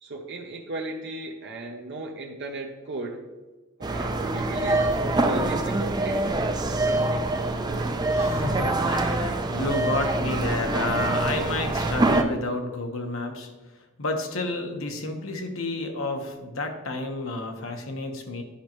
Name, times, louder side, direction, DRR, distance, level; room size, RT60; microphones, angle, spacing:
voice 1, 0.0-3.2 3.8-6.3 10.1-10.2, right 2 dB, 60° right, 0 dB, 0.7 m, -36 dB
sound 1, 3.8-12.2, right 2 dB, 20° right, 0.4 m, -25 dB
voice 2, 7.3-13.5 14.0-18.4, left 2 dB, 85° left, 4 dB, 1.1 m, -31 dB
10.0 x 5.3 x 3.0 m, 1.2 s
head